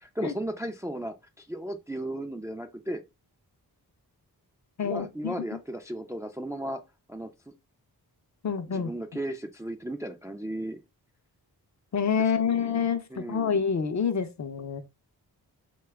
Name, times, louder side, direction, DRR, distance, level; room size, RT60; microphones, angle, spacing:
voice 1, 0.0-3.0 4.8-6.8 7.1-7.5 8.7-10.8 12.4-13.5, right 1 dB, 10° right, 0.3 m, -35 dB
voice 2, 4.8-5.3 8.4-8.9 11.9-14.8, left 6 dB, 45° left, 0.5 m, -27 dB
2.8 x 2.2 x 3.3 m
cardioid pair, 55°, 39 cm